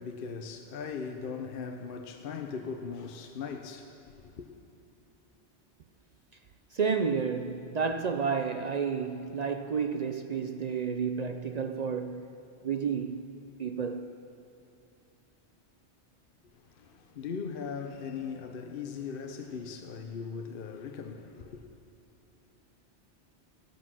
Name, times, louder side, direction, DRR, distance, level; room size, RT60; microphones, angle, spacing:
voice 1, 0.0-4.5 16.5-21.6, left 5 dB, 55° left, 0.9 m, -39 dB
voice 2, 6.7-12.3 12.6-13.3 13.6-14.1, right 6 dB, 50° right, 0.5 m, -31 dB
15.0 x 11.5 x 6.2 m
omnidirectional pair, 1.2 m